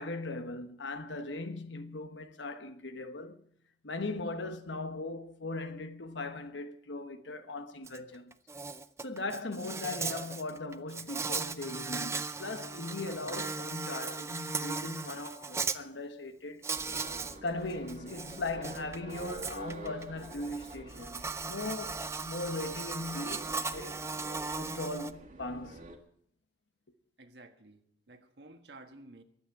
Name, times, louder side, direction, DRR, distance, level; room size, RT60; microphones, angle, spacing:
voice 1, 0.0-3.4 3.8-8.3 9.0-16.6 17.4-24.0 24.6-25.8, left 2 dB, 85° left, 1.2 m, -39 dB
Insect, 7.9-8.0 8.3-15.8 16.6-17.4 17.7-25.1, right 4 dB, 15° right, 0.5 m, -37 dB
sound 1, 16.7-26.0, right 1 dB, 45° right, 1.7 m, -48 dB
voice 2, 27.2-29.2, right 2 dB, 65° right, 1.4 m, -53 dB
22.5 x 8.7 x 4.7 m
head